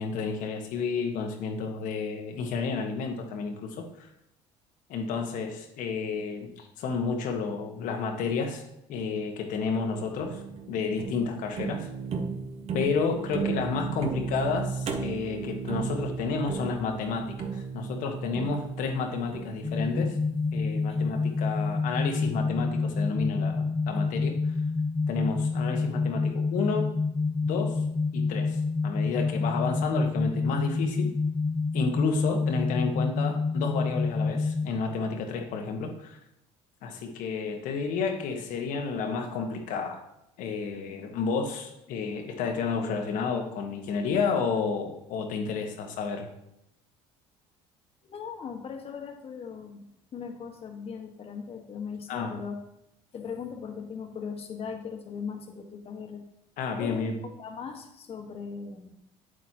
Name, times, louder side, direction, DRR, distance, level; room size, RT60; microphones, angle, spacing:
voice 1, 0.0-4.1 4.9-8.6 8.9-10.4 10.7-11.9 12.7-20.2 20.5-24.4 25.1-26.9 27.4-27.8 28.1-31.1 31.7-36.2 36.8-40.0 40.4-46.3 52.1-52.4 56.6-57.1, left 5 dB, 65° left, 3 dB, 1.3 m, -31 dB
sound 1, 9.8-21.0, right 5 dB, 45° right, 1.0 m, -35 dB
sound 2, 19.6-34.6, left 4 dB, 15° left, 1.5 m, -28 dB
voice 2, 48.0-49.8 50.1-52.6 53.1-56.2 56.8-57.1 57.4-58.9, left 6 dB, 45° left, 4 dB, 1.5 m, -39 dB
8.3 x 7.7 x 2.9 m, 0.83 s
supercardioid pair, 80°, 14 cm